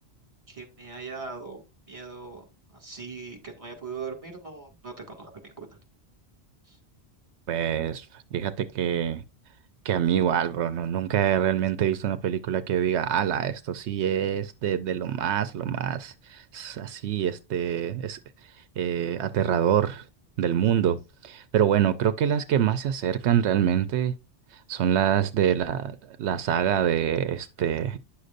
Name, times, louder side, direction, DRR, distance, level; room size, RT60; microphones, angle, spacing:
voice 1, 0.5-5.8 6.7-6.8, right 5 dB, 30° right, 2.1 m, -40 dB
voice 2, 7.5-9.2 9.8-18.2 18.8-20.0 20.4-24.1 24.7-28.0, right 9 dB, 85° right, 0.9 m, -25 dB
10.0 x 6.5 x 2.5 m
omnidirectional pair, 1.1 m